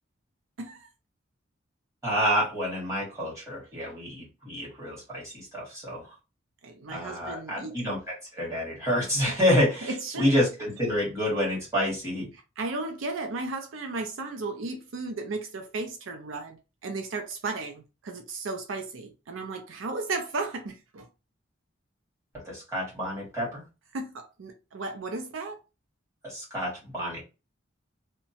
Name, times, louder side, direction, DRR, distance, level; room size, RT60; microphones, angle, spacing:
voice 1, 0.6-0.9 6.6-7.7 9.3-9.4 10.1-10.3 12.6-21.1 23.9-25.6, right 3 dB, 80° right, 0.5 m, -35 dB
voice 2, 2.0-6.2 6.9-12.3 22.3-23.6 26.2-27.2, equal, 15° right, 1.5 m, -28 dB
2.8 x 2.1 x 2.7 m
head